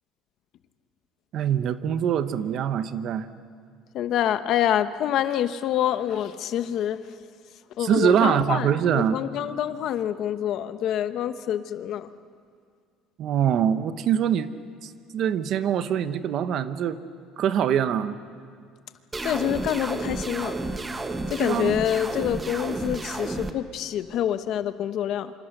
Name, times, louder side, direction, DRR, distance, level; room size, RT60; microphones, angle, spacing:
voice 1, 1.3-3.3 7.8-9.2 13.2-14.5 14.8-17.0 17.4-18.2 21.4-21.8, right 9 dB, 45° right, 12 dB, 0.9 m, -24 dB
voice 2, 3.9-7.0 7.8-8.7 8.9-12.1 19.2-20.5 21.3-25.3, left 10 dB, 45° left, 11 dB, 1.0 m, -26 dB
sound 1, 19.1-23.5, right 2 dB, 15° right, 1.0 m, -31 dB
27.0 x 26.0 x 6.7 m, 2.2 s
cardioid pair, 175°, 0 cm